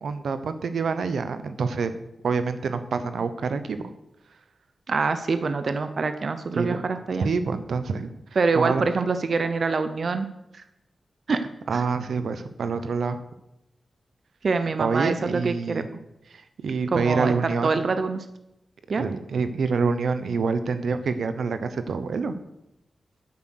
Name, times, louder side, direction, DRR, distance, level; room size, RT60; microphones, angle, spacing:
voice 1, 0.0-2.0 2.2-3.8 6.6-6.8 7.2-8.1 8.5-8.9 11.7-13.2 14.8-15.9 16.3-17.9 19.0-22.4, right 5 dB, 90° right, 11 dB, 0.9 m, -26 dB
voice 2, 4.9-7.3 8.4-10.3 10.5-10.6 11.3-11.4 11.7-11.8 14.4-15.8 16.9-18.2 18.9-19.0, right 4 dB, 50° right, 10 dB, 0.6 m, -25 dB
9.7 x 7.9 x 6.5 m, 0.86 s
wide cardioid pair, 170°, 0 cm